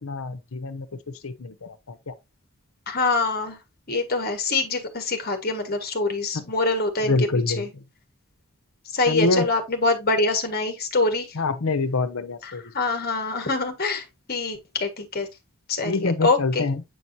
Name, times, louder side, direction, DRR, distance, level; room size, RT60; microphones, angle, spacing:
voice 1, 0.0-2.1 6.3-6.5 7.0-7.8 9.1-9.5 11.3-12.6 15.8-16.8, left 3 dB, 85° left, 0.8 m, -26 dB
voice 2, 2.9-3.6 3.9-7.2 7.6-7.7 8.9-11.3 12.7-14.0 14.3-15.3 15.7-16.6, left 3 dB, 45° left, 1.4 m, -24 dB
8.0 x 4.6 x 2.6 m
head